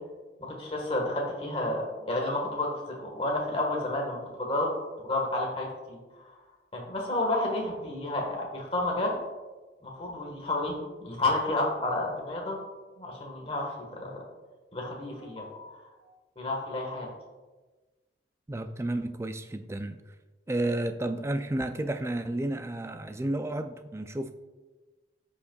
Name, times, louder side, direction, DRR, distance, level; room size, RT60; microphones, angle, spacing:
voice 1, 0.4-4.7 5.0-6.0 6.7-9.2 9.8-12.6 13.0-14.1 14.7-15.8 16.4-17.1, left 2 dB, 30° left, -1 dB, 1.5 m, -31 dB
voice 2, 18.5-20.0 20.5-24.3, right 1 dB, 15° right, 9 dB, 0.3 m, -31 dB
14.5 x 5.3 x 2.3 m, 1.2 s
head